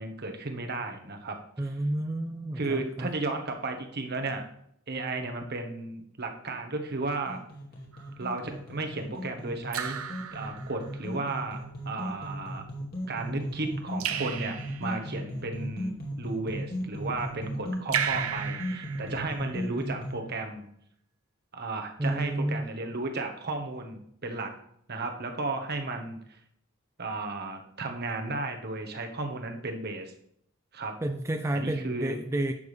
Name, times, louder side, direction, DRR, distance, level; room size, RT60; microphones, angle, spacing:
voice 1, 0.0-1.4 2.6-4.5 4.9-7.4 8.2-9.9 10.3-12.6 13.1-20.7 21.5-24.5 24.9-26.2 27.0-30.1 30.7-31.0 31.5-32.1, right 3 dB, 50° right, 4 dB, 1.3 m, -34 dB
voice 2, 1.6-3.1 22.0-22.6 31.0-32.5, right 1 dB, 15° right, 6 dB, 0.4 m, -30 dB
sound 1, 7.0-20.1, equal, 45° left, 2.3 m, -36 dB
Raindrop / Drip, 7.9-8.4 9.7-11.1 14.0-15.1 17.9-19.6, right 8 dB, 85° right, 0.7 m, -34 dB
11.0 x 7.1 x 3.3 m, 0.71 s
head